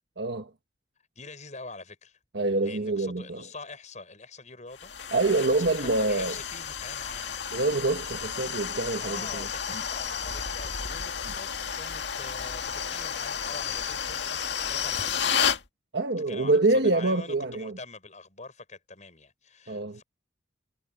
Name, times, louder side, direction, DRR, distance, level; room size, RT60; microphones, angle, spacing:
voice 1, 0.2-0.5 2.3-3.4 5.1-6.4 7.5-9.5 9.7-9.8 11.2-11.3 15.9-17.8 19.7-20.0, right 2 dB, 65° right, 1.4 m, -26 dB
voice 2, 1.0-2.2 2.6-5.4 5.7-7.4 9.0-15.6 16.3-20.0, left 3 dB, 40° left, 7.4 m, -45 dB
sound 1, 4.8-15.6, left 7 dB, 70° left, 2.0 m, -32 dB
head